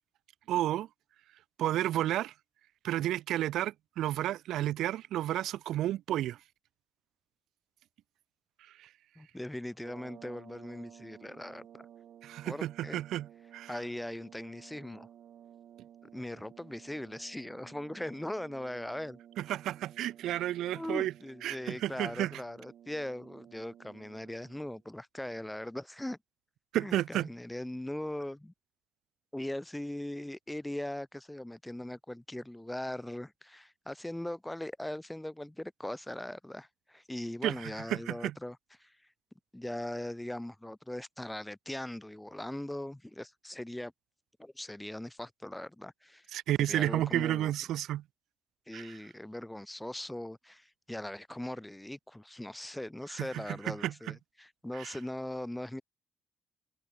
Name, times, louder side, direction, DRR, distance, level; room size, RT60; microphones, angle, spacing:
voice 1, 0.5-0.9 1.6-2.3 2.8-6.4 8.8-8.9 12.2-13.3 13.5-13.7 19.4-21.1 21.4-22.3 26.7-27.3 37.4-38.3 46.3-48.0 48.7-48.9 53.2-54.1 54.8-54.9, right 13 dB, 80° right, 0.6 m, -32 dB
voice 2, 9.2-11.9 12.4-13.0 13.7-15.1 16.1-19.2 20.7-26.2 26.8-28.5 29.3-39.0 39.5-43.9 44.4-46.3 46.6-47.5 48.7-55.8, left 1 dB, 5° left, 0.9 m, -40 dB
sound 1, 9.7-24.9, right 10 dB, 65° right, 1.3 m, -55 dB
cardioid pair, 90°, 0 cm